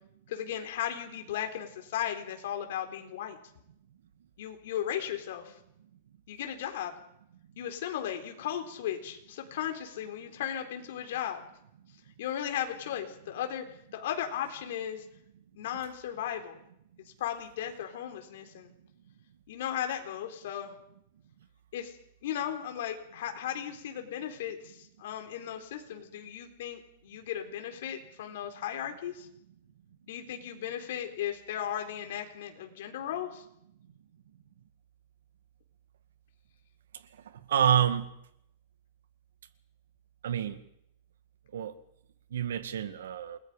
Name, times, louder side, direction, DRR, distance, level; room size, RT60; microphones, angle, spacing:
voice 1, 0.3-3.4 4.4-5.6 6.3-6.9 7.6-11.4 12.2-13.6 13.9-15.0 15.6-16.6 17.2-18.7 19.5-20.8 21.7-22.0 22.2-29.3 30.1-33.4, left 10 dB, 60° left, 4.0 m, -36 dB
voice 2, 37.5-38.1 40.2-40.6 41.5-41.7 42.3-43.4, right 9 dB, 90° right, 2.0 m, -27 dB
29.0 x 21.0 x 5.1 m
supercardioid pair, 165°, 0 cm